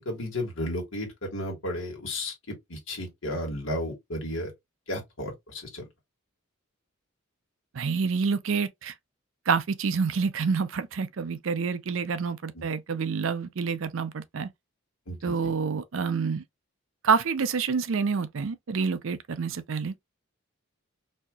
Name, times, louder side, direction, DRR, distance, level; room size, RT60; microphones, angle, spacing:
voice 1, 0.0-4.5 4.9-5.8 12.5-12.7 15.1-15.5, left 1 dB, 65° left, 1.7 m, -33 dB
voice 2, 7.8-8.9 9.5-14.5 15.2-16.4 17.0-19.9, right 5 dB, 70° right, 0.5 m, -27 dB
4.2 x 2.7 x 2.3 m
head